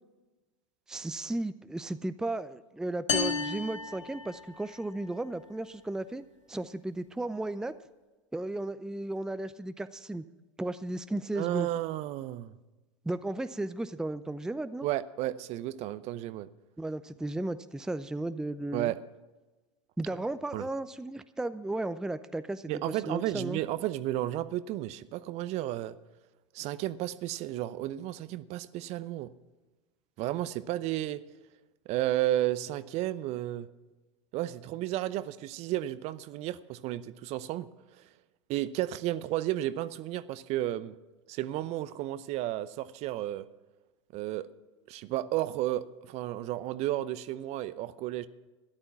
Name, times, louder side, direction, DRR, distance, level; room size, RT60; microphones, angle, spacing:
voice 1, 0.9-6.2 6.5-7.7 8.3-10.2 10.6-11.7 13.0-14.9 16.8-18.9 20.0-23.6, right 2 dB, 5° right, 13 dB, 0.5 m, -35 dB
sound 1, 3.1-4.8, left 5 dB, 85° left, 1.4 m, -32 dB
voice 2, 11.4-12.5 14.8-16.5 18.7-19.0 20.5-20.7 22.7-26.0 26.5-29.3 30.2-31.2 31.9-33.7 34.3-37.7 38.5-40.9 41.3-43.4 44.1-44.5 44.9-48.3, right 14 dB, 45° right, 16 dB, 0.7 m, -32 dB
13.0 x 11.0 x 5.8 m, 1.2 s
hypercardioid pair, 90°, 16 cm